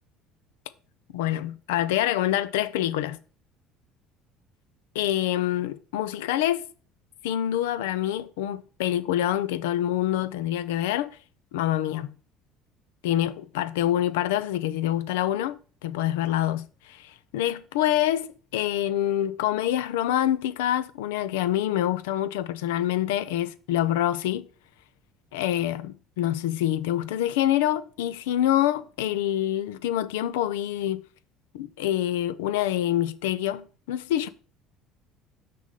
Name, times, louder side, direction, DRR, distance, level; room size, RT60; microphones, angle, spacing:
voice 1, 1.1-3.2 4.9-6.7 7.2-11.2 11.5-12.2 13.0-24.4 25.3-31.0 31.5-34.3, left 12 dB, 90° left, 0.5 m, -26 dB
6.3 x 4.3 x 5.2 m
supercardioid pair, 90°, 0 cm